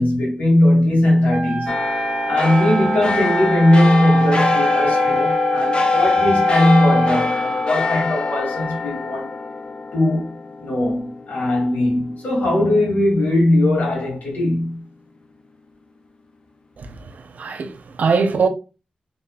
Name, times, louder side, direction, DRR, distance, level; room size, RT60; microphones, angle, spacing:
voice 1, 0.0-1.8 2.3-9.4 9.9-14.8, left 1 dB, 80° left, 2.3 m, -19 dB
Wind instrument woodwind instrument, 1.3-7.3, right 5 dB, 40° right, 0.4 m, -25 dB
sound 1, 1.7-12.4 12.9-13.0, left 4 dB, 40° left, 0.7 m, -23 dB
voice 2, 16.8-18.5, right 5 dB, 75° right, 0.7 m, -22 dB
4.1 x 3.6 x 2.3 m
wide cardioid pair, 85°, 3 cm